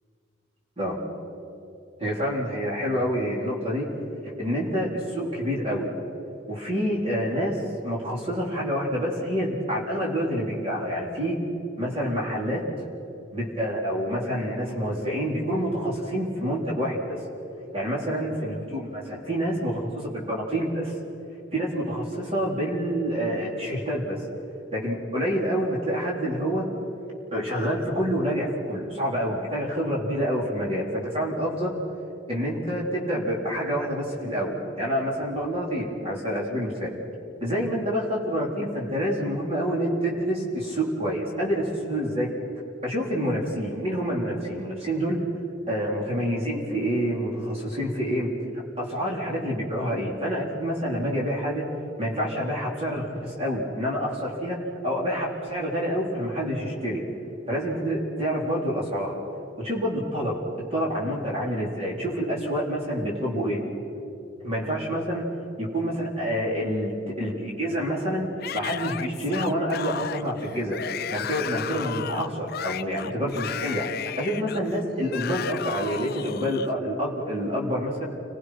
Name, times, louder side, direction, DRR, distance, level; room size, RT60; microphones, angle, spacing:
voice 1, 2.0-3.9 4.2-5.9 6.5-11.4 11.8-12.6 13.3-17.2 17.7-21.0 21.5-24.2 24.7-26.7 27.3-31.7 32.3-36.9 37.4-42.3 42.8-45.2 45.7-48.3 48.8-51.6 52.0-54.6 54.8-57.0 57.5-59.2 59.6-60.4 60.7-63.6 64.4-65.2 65.6-70.8 71.1-73.8 74.2-78.0, equal, 35° right, -4 dB, 4.1 m, -27 dB
Yell / Screaming, 68.4-76.7, left 8 dB, 55° left, 0.5 m, -34 dB
30.0 x 22.0 x 6.0 m, 2.8 s
head